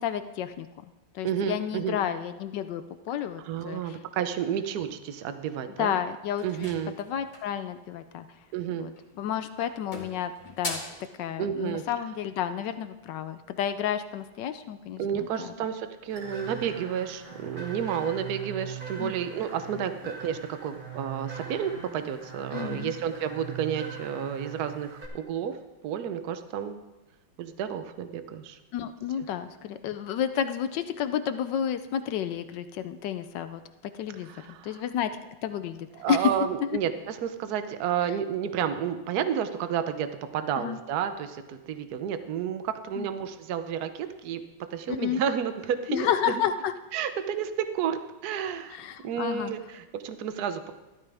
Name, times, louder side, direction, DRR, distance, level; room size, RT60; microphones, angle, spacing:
voice 1, 0.0-4.0 5.8-6.4 7.0-8.3 8.7-8.9 9.2-10.8 11.2-15.5 19.0-19.1 22.5-22.9 28.7-33.6 34.0-35.1 35.4-36.3 36.6-36.7 40.6-40.8 43.0-43.1 44.9-45.2 45.9-46.7 48.7-49.5, left 9 dB, 70° left, 10 dB, 1.1 m, -31 dB
voice 2, 1.2-2.0 3.4-6.0 6.4-7.0 8.5-8.9 11.4-11.8 15.0-25.6 25.8-26.8 27.4-28.6 34.2-34.8 36.0-44.4 44.7-46.3 46.9-48.8 49.0-50.7, right 8 dB, 60° right, 9 dB, 1.1 m, -31 dB
sound 1, 6.4-7.6 8.9-9.3 9.6-11.0, left 2 dB, 25° left, 2.0 m, -39 dB
sound 2, 16.1-25.1, right 7 dB, 25° right, 1.8 m, -41 dB
14.0 x 13.0 x 3.4 m, 1.1 s
omnidirectional pair, 2.2 m